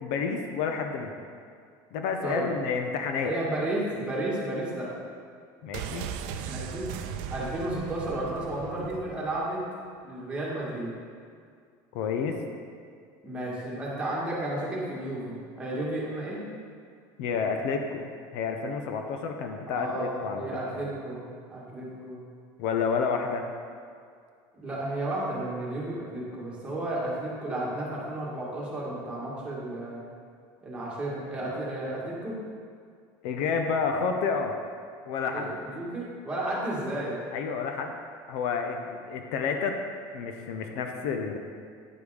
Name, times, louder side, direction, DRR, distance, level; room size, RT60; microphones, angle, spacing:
voice 1, 0.0-1.1 1.9-3.3 5.6-6.1 11.9-12.4 17.2-20.5 20.7-20.9 22.6-23.5 33.2-34.6 35.1-35.5 37.3-38.0 38.3-39.8 40.1-41.4, left 5 dB, 70° left, 4 dB, 0.7 m, -30 dB
voice 2, 3.2-4.9 6.5-6.9 7.3-9.6 10.0-10.9 13.2-16.4 19.7-22.2 24.5-30.0 30.6-32.4 35.3-37.2, right 1 dB, 10° right, -7 dB, 2.1 m, -33 dB
sound 1, 5.7-9.5 9.8-9.9, right 8 dB, 70° right, 0.5 m, -38 dB
9.9 x 5.2 x 4.9 m, 2.2 s
cardioid pair, 155°, 10 cm